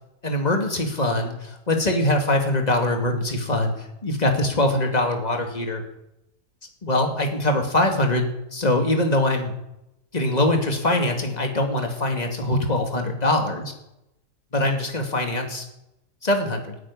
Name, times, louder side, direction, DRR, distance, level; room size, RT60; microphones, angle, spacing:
voice 1, 0.2-3.7 4.0-5.8 6.8-8.3 8.5-9.5 10.1-13.7 14.5-15.6 16.2-16.8, left 1 dB, 25° left, 3 dB, 2.5 m, -23 dB
15.5 x 8.5 x 10.0 m, 0.86 s
omnidirectional pair, 1.8 m